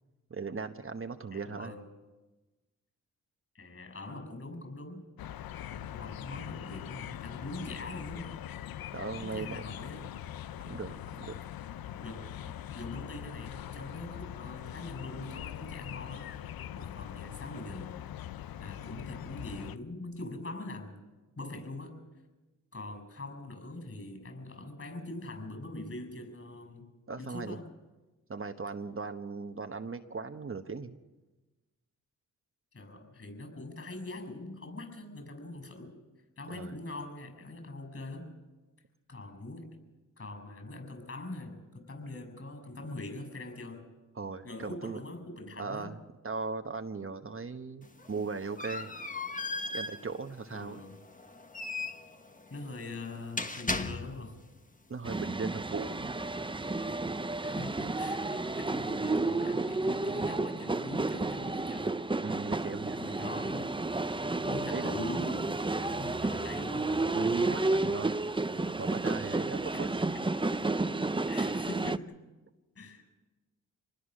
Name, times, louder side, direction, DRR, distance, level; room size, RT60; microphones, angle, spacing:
voice 1, 0.3-1.8 8.9-9.6 10.7-11.3 27.1-27.6 28.3-30.9 36.5-36.8 44.2-45.0 45.6-46.0 46.2-48.9 49.7-50.8 54.9-56.1 62.2-63.0 64.7-64.9 67.1-68.1 68.8-69.9, right 4 dB, 35° right, 6 dB, 1.2 m, -38 dB
voice 2, 1.3-2.0 3.5-5.1 5.7-8.3 9.1-10.1 11.7-16.4 16.7-18.0 18.6-21.0 21.4-22.0 22.7-27.7 32.7-35.9 36.4-38.3 39.1-39.8 40.2-43.9 44.4-45.9 50.5-51.0 52.5-54.4 57.4-61.9 62.9-63.8 64.5-67.0 69.7-69.8 70.1-70.3 71.3-72.1 72.7-73.1, left 2 dB, 40° left, 8 dB, 6.8 m, -43 dB
sound 1, 5.2-19.8, left 11 dB, 80° left, 0.7 m, -42 dB
sound 2, 47.8-54.4, left 3 dB, 20° left, 1.4 m, -38 dB
sound 3, 55.0-72.0, right 2 dB, 15° right, 0.7 m, -31 dB
25.5 x 20.0 x 6.5 m, 1.2 s
cardioid pair, 60°, 35 cm